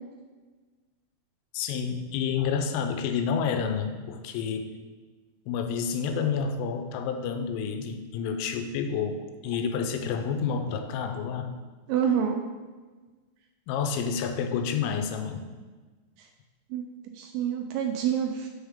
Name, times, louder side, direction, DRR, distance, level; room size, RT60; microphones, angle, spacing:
voice 1, 1.5-4.7 5.5-11.6 13.7-15.4, left 6 dB, 85° left, 6 dB, 3.2 m, -29 dB
voice 2, 11.9-12.4 16.7-16.8 17.1-18.5, right 8 dB, 85° right, 3 dB, 2.7 m, -27 dB
7.1 x 6.3 x 3.5 m, 1.3 s
omnidirectional pair, 5.7 m